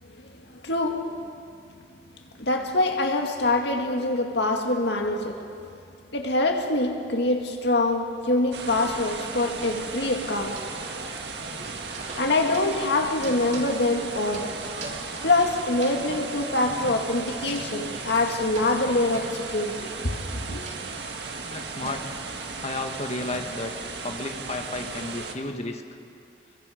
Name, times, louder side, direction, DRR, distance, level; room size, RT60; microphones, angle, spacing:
voice 1, 0.6-1.2 2.4-5.4 6.1-10.6 12.2-14.6 15.2-19.9 20.5-20.7, left 2 dB, 65° left, 2.2 m, -24 dB
sound 1, 8.5-25.3, right 4 dB, 65° right, 1.8 m, -36 dB
sound 2, 10.3-11.2 11.4-16.2 16.6-19.5 20.3-20.8 21.2-23.7, right 2 dB, 40° right, 3.0 m, -42 dB
voice 2, 21.5-22.1 22.6-23.8 24.0-25.8, left 2 dB, 40° left, 1.7 m, -32 dB
28.5 x 22.5 x 5.2 m
head